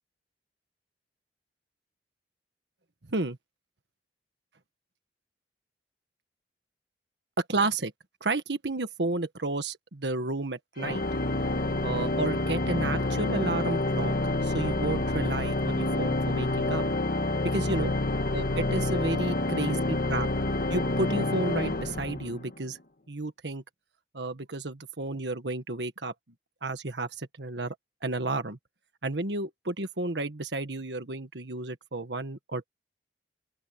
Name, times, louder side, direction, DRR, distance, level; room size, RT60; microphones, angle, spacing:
voice 1, 7.4-7.9 8.2-11.0 11.8-14.1 14.4-16.8 17.4-17.9 18.3-20.3 20.7-22.8 23.1-23.6 24.1-26.1 26.6-27.7 28.0-28.6 29.0-32.6, right 2 dB, 80° right, 1.5 m, -32 dB
Organ, 10.8-22.6, left 2 dB, 55° left, 1.6 m, -28 dB
open air
head